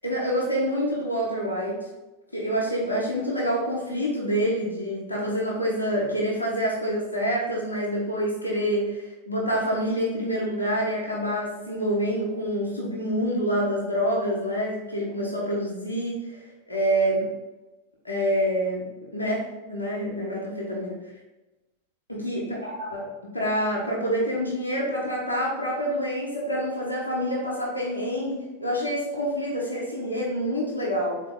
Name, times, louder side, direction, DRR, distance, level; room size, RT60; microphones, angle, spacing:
voice 1, 0.0-1.8 2.3-17.3 18.0-18.9 19.1-21.0 22.1-31.2, equal, 85° left, -4 dB, 0.9 m, -27 dB
3.8 x 2.8 x 3.8 m, 1.1 s
figure-of-eight pair, 90°, 0 cm